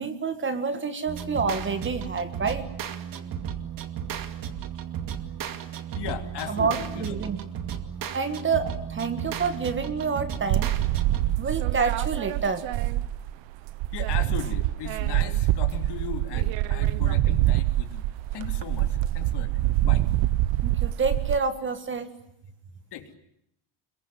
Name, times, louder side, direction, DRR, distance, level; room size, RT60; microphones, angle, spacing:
voice 1, 0.0-2.7 6.5-7.4 8.1-10.7 11.4-12.7 20.6-22.1, right 5 dB, 25° right, 10 dB, 1.8 m, -28 dB
sound 1, 1.1-11.6, right 9 dB, 40° right, 2.4 m, -34 dB
voice 2, 6.0-7.2 13.9-18.0 18.3-20.0 22.9-23.1, left 9 dB, 55° left, 6 dB, 3.5 m, -37 dB
sound 2, 10.5-13.4 13.7-21.4, right 15 dB, 65° right, 1.1 m, -25 dB
27.0 x 22.5 x 9.4 m, 0.77 s
cardioid pair, 150°, 49 cm